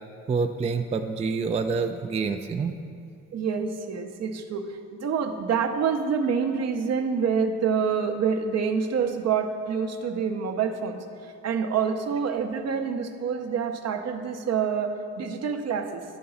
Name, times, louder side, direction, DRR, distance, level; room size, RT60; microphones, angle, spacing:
voice 1, 0.3-2.7, right 4 dB, 20° right, 6 dB, 0.4 m, -27 dB
voice 2, 3.3-11.0 11.4-16.0, right 6 dB, 60° right, 6 dB, 0.8 m, -27 dB
11.0 x 3.8 x 7.0 m, 2.5 s
cardioid pair, 90°, 30 cm